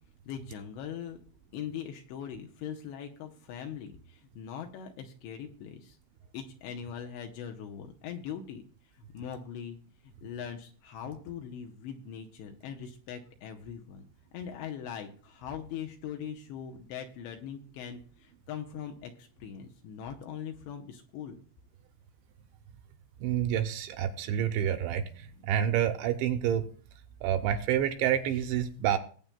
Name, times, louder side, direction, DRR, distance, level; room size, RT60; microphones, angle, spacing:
voice 1, 0.3-1.2 1.5-6.0 6.3-8.7 9.1-9.8 10.2-14.0 14.3-21.4, left 8 dB, 75° left, 3 dB, 2.7 m, -41 dB
voice 2, 23.2-25.0 25.5-26.7 27.2-29.0, right 10 dB, 80° right, 6 dB, 2.9 m, -28 dB
21.0 x 8.6 x 2.2 m, 0.43 s
omnidirectional pair, 5.6 m